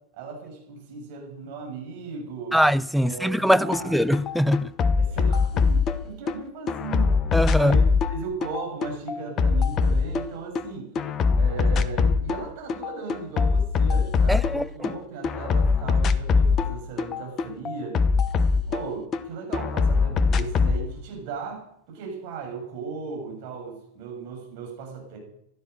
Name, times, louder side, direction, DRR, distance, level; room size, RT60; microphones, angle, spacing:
voice 1, 0.1-2.6 3.0-4.0 5.0-7.2 7.5-11.0 11.3-18.0 18.5-25.2, right 5 dB, 45° right, 6.8 m, -37 dB
voice 2, 2.5-4.7 7.3-7.8 14.3-14.9, equal, ahead, 0.5 m, -22 dB
sound 1, 3.7-3.8 4.1-6.3 6.7-10.6 10.9-12.4 12.7-14.9 15.2-19.2 19.5-20.8, left 4 dB, 30° left, 0.9 m, -22 dB
15.0 x 12.5 x 6.6 m
figure-of-eight pair, 90°, 0 cm